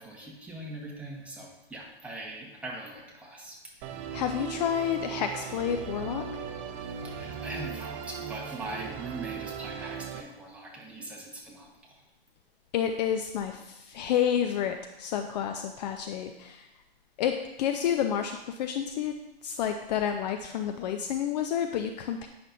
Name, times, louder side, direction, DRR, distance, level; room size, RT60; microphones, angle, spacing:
voice 1, 0.0-3.6 7.0-12.0, right 2 dB, 5° right, -3 dB, 1.3 m, -41 dB
Musical instrument, 3.8-10.2, right 7 dB, 30° right, 0.6 m, -38 dB
voice 2, 4.1-6.2 12.7-16.7 17.2-19.1 19.4-22.3, left 9 dB, 45° left, 6 dB, 0.5 m, -29 dB
8.9 x 5.9 x 2.6 m, 0.94 s
hypercardioid pair, 120°, 30 cm